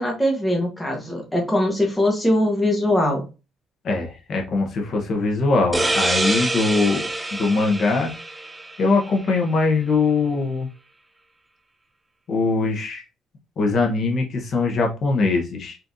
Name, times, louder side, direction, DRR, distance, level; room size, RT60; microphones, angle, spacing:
voice 1, 0.0-3.3, left 1 dB, 5° left, -1 dB, 1.2 m, -21 dB
voice 2, 3.8-8.1 8.8-10.7 12.3-13.0 13.6-15.8, left 3 dB, 45° left, 1 dB, 1.1 m, -22 dB
sound 1, 5.7-9.2, right 2 dB, 10° right, 0.4 m, -26 dB
4.3 x 3.9 x 2.7 m, 0.30 s
cardioid pair, 145°, 0 cm